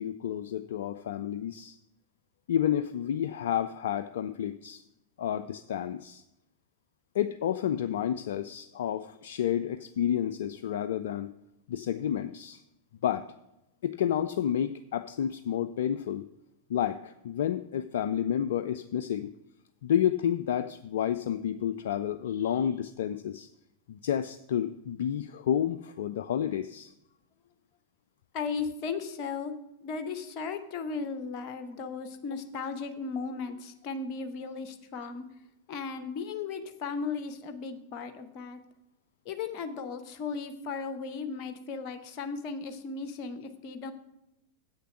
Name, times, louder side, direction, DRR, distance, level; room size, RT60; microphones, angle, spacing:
voice 1, 0.0-1.8 2.5-4.8 5.2-6.2 7.1-11.3 11.7-12.6 13.0-13.3 13.8-16.3 16.7-19.3 19.8-23.5 23.9-26.9, left 10 dB, 60° left, 12 dB, 0.3 m, -30 dB
voice 2, 28.3-29.5 29.8-35.3 35.7-38.6 39.2-43.9, left 5 dB, 40° left, 8 dB, 0.9 m, -36 dB
8.3 x 6.8 x 6.1 m, 0.87 s
figure-of-eight pair, 90°, 0 cm